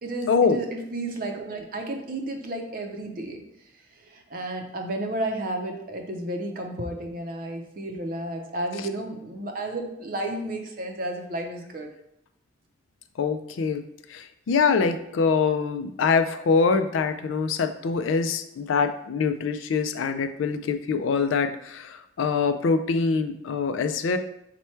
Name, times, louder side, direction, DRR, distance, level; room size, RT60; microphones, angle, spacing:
voice 1, 0.0-3.4 4.1-11.9, right 1 dB, 45° right, 3 dB, 0.5 m, -32 dB
voice 2, 13.2-13.8 14.1-24.2, left 5 dB, 90° left, 9 dB, 0.4 m, -24 dB
4.3 x 2.2 x 4.4 m, 0.77 s
head